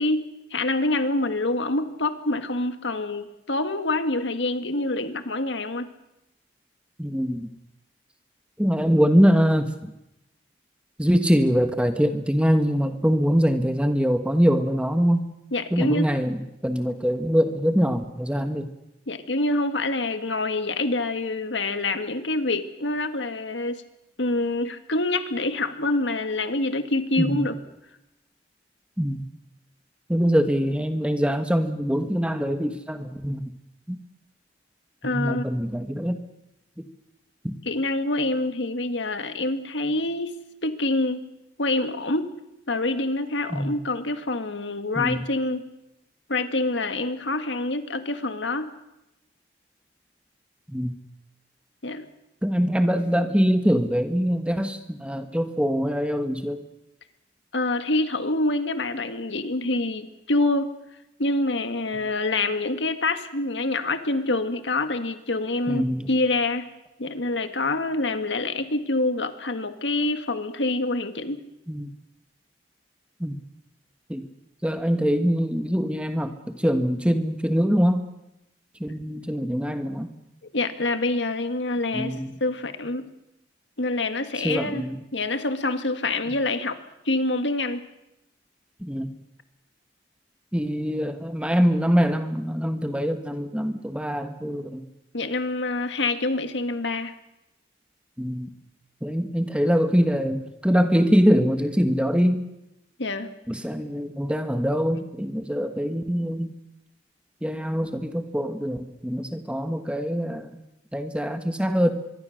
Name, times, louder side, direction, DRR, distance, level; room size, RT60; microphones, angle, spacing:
voice 1, 0.0-5.9 15.5-16.1 19.1-23.8 24.2-27.6 35.0-35.4 37.6-40.4 40.6-41.2 41.6-42.3 42.7-45.7 46.3-48.7 51.8-52.1 57.5-60.7 61.2-66.7 67.0-71.4 80.5-82.2 82.4-83.1 83.8-84.9 85.1-86.8 87.1-87.8 95.1-97.1 103.0-103.3, left 2 dB, 90° left, 9 dB, 1.8 m, -26 dB
voice 2, 7.0-7.5 8.6-9.9 11.0-15.3 15.7-18.7 27.2-27.5 29.0-29.3 30.1-33.5 33.9-34.0 35.0-36.2 36.8-36.9 37.4-37.5 43.5-43.8 45.0-45.2 50.7-50.9 52.4-56.6 65.7-66.1 71.7-71.9 73.2-73.4 74.1-74.3 74.6-78.0 78.8-80.1 81.9-82.4 84.4-85.0 88.8-89.1 90.5-94.8 98.2-98.5 99.0-102.4 103.5-106.5 107.4-110.6 110.9-111.9, equal, 5° right, 7 dB, 1.5 m, -23 dB
24.0 x 23.0 x 6.5 m, 0.90 s
head